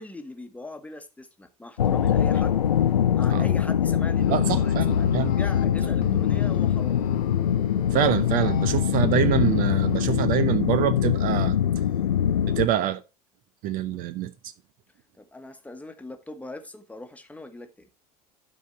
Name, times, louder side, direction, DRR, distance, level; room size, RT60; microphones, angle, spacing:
voice 1, 0.0-2.6 3.1-7.1 15.2-17.9, left 2 dB, 5° left, 1.3 m, -40 dB
sound 1, 1.8-12.7, left 9 dB, 80° left, 0.4 m, -23 dB
sound 2, 4.2-10.1, left 15 dB, 45° left, 0.8 m, -35 dB
voice 2, 4.3-5.3 7.9-11.5 12.5-13.0 13.6-14.3, right 11 dB, 45° right, 0.7 m, -25 dB
12.0 x 4.2 x 4.2 m
figure-of-eight pair, 75°, 20 cm